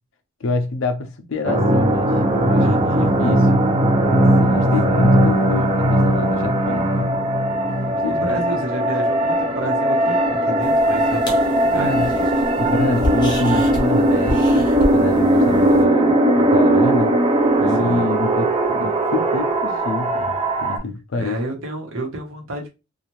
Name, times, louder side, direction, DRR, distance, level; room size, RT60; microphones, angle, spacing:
voice 1, 0.4-2.1 2.4-2.7 3.2-3.7 4.4-7.1 7.9-8.4 11.8-12.1 12.6-17.2 17.6-21.4, left 3 dB, 60° left, 0.5 m, -26 dB
sound 1, 1.4-20.8, right 1 dB, 25° right, 0.4 m, -18 dB
voice 2, 2.6-3.1 4.4-4.7 8.0-12.3 12.6-12.7 17.8-18.1 21.2-22.7, right 2 dB, 70° right, 1.0 m, -30 dB
sound 2, 10.6-15.8, left 1 dB, 20° left, 0.6 m, -30 dB
2.6 x 2.4 x 3.0 m
head